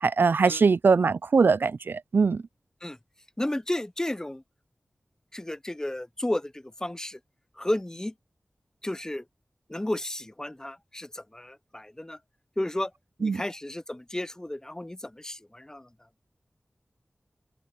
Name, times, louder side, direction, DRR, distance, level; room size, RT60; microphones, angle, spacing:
voice 1, 0.0-2.4 13.2-13.4, right 4 dB, 80° right, 0.4 m, -22 dB
voice 2, 3.4-4.4 5.3-7.2 7.6-8.1 8.8-9.2 9.7-12.2 12.6-12.9 13.2-15.9, left 1 dB, 15° left, 0.6 m, -33 dB
open air
wide cardioid pair, 45°, 4 cm